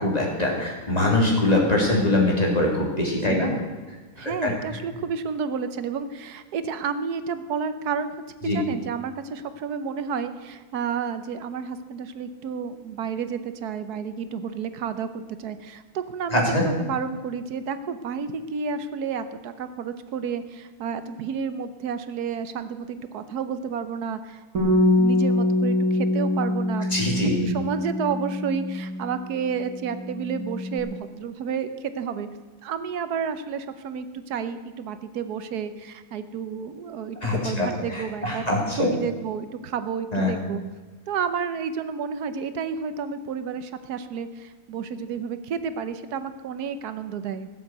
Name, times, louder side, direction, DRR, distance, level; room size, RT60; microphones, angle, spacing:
voice 1, 0.0-3.5 4.2-4.5 8.4-8.6 16.3-16.6 26.9-27.4 37.2-38.9 40.1-40.3, left 2 dB, 25° left, -1 dB, 3.1 m, -23 dB
voice 2, 4.2-8.1 8.5-32.3 32.6-40.6 41.1-47.5, right 6 dB, 90° right, 11 dB, 1.4 m, -31 dB
Bass guitar, 24.5-29.2 29.5-30.8, left 1 dB, 70° right, 2.8 m, -24 dB
16.5 x 7.6 x 7.9 m, 1.3 s
omnidirectional pair, 1.6 m